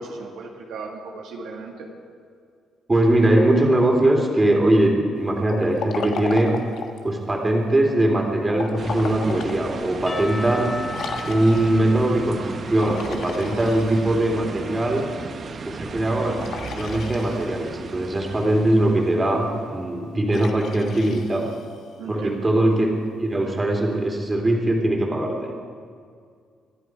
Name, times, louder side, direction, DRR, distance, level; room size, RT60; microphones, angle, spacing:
voice 1, 0.0-1.9 13.4-13.7 22.0-22.5, right 4 dB, 80° right, 0 dB, 2.0 m, -35 dB
voice 2, 2.9-6.5 7.0-10.7 11.3-15.1 15.6-21.5 22.1-22.9 23.2-25.5, right 1 dB, 20° right, 1 dB, 3.1 m, -21 dB
Liquid, 5.4-7.1 8.5-9.6 10.1-10.2 10.9-11.9 12.7-14.3 16.4-17.7 20.3-21.9, left 5 dB, 70° left, 1.3 m, -35 dB
sound 1, 8.8-20.0, right 4 dB, 45° right, 1.1 m, -36 dB
Percussion / Church bell, 10.1-13.9, left 2 dB, 25° left, 1.8 m, -36 dB
25.0 x 11.0 x 4.8 m, 2.2 s
cardioid pair, 90°, 0 cm